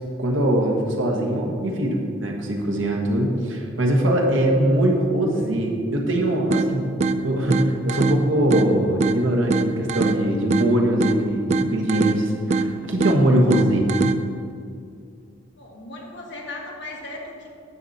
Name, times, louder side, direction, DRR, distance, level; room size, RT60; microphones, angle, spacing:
voice 1, 0.2-7.0 7.2-13.8, right 1 dB, 85° right, 0 dB, 1.4 m, -22 dB
sound 1, 6.5-14.5, right 3 dB, 35° right, 0.3 m, -25 dB
voice 2, 15.6-17.5, left 2 dB, 65° left, -1 dB, 1.5 m, -36 dB
9.7 x 6.8 x 4.3 m, 2.3 s
head